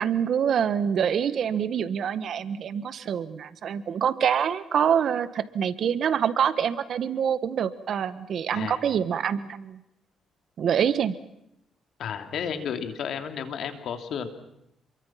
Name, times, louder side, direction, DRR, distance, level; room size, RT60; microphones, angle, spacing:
voice 1, 0.0-9.8 10.6-11.1, right 8 dB, 60° right, 14 dB, 1.4 m, -26 dB
voice 2, 12.0-14.3, left 7 dB, 70° left, 7 dB, 3.0 m, -32 dB
29.0 x 23.0 x 5.9 m, 0.80 s
cardioid pair, 90°, 0 cm